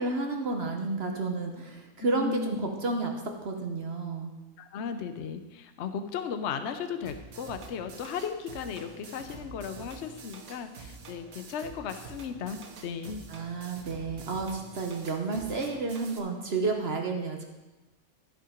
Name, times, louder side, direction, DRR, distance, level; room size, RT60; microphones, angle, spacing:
voice 1, 0.0-4.3 13.3-17.4, right 3 dB, 50° right, 3 dB, 1.1 m, -31 dB
voice 2, 2.0-2.6 4.6-13.2, left 7 dB, 60° left, 9 dB, 0.9 m, -36 dB
sound 1, 7.1-16.2, right 5 dB, 80° right, 1.5 m, -47 dB
13.5 x 5.6 x 5.1 m, 1.1 s
omnidirectional pair, 1.5 m